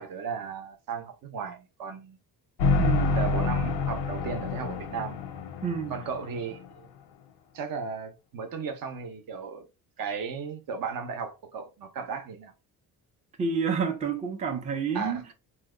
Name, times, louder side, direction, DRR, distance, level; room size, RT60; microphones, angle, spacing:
voice 1, 0.0-2.2 3.2-5.2 5.9-6.9 7.5-9.7 10.0-12.5 14.9-15.3, right 5 dB, 60° right, 0.7 m, -35 dB
sound 1, 2.6-6.7, left 4 dB, 90° left, 0.7 m, -28 dB
voice 2, 2.8-3.3 5.6-6.0 13.4-15.2, right 5 dB, 20° right, 0.4 m, -29 dB
2.8 x 2.1 x 3.6 m
wide cardioid pair, 180°, 38 cm